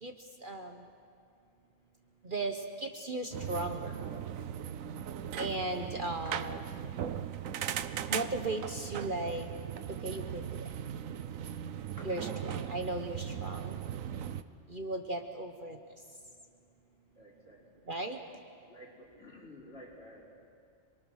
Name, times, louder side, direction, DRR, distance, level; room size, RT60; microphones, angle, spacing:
voice 1, 0.4-0.9 2.2-3.9 5.4-6.7 8.1-9.5 9.9-10.5 12.0-13.8 14.7-15.8 17.9-18.2, right 2 dB, 40° right, 5 dB, 1.2 m, -36 dB
sound 1, 3.3-14.4, right 9 dB, 80° right, 1.2 m, -38 dB
sound 2, 6.2-6.6 7.2-7.3 8.1-9.3 9.7-9.8 9.9-10.2 11.0-11.1 11.3-11.4 11.6-11.7 11.9-12.3 13.2-13.6 14.1-14.2 14.4-15.2, equal, 15° left, 3.0 m, -56 dB
voice 2, 17.1-17.6 18.7-20.5, left 1 dB, 50° left, -3 dB, 5.0 m, -52 dB
27.5 x 22.0 x 6.4 m, 2.3 s
omnidirectional pair, 1.4 m